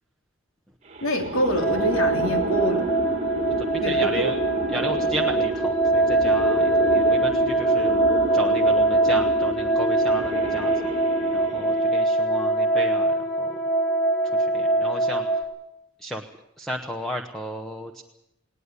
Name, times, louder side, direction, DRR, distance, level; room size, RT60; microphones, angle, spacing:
sound 1, 0.9-12.0, right 2 dB, 30° right, 1.6 m, -30 dB
voice 1, 1.0-2.8 3.8-4.4, equal, 70° left, 4 dB, 3.3 m, -25 dB
sound 2, 1.6-15.4, right 2 dB, 30° left, 2.8 m, -22 dB
voice 2, 3.8-4.4 4.7-7.9 8.3-10.7 11.3-13.1 13.4-13.5 14.5-15.2 16.0-16.2 16.6-18.0, equal, ahead, 2 dB, 1.0 m, -33 dB
19.5 x 18.5 x 8.4 m, 0.82 s
head